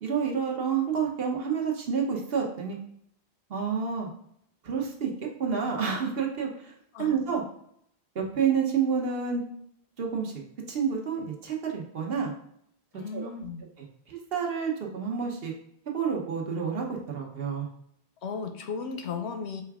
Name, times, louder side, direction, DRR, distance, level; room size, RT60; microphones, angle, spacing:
voice 1, 0.0-2.8 3.5-4.1 4.6-5.1 5.4-6.7 7.0-7.4 8.1-9.4 10.0-10.3 10.7-12.3 13.1-13.3 14.1-15.5 15.9-17.7, right 6 dB, 65° right, 0 dB, 1.1 m, -29 dB
voice 2, 12.9-13.6 18.2-19.6, left 5 dB, 85° left, 6 dB, 1.0 m, -35 dB
4.4 x 2.3 x 4.6 m, 0.69 s
omnidirectional pair, 1.1 m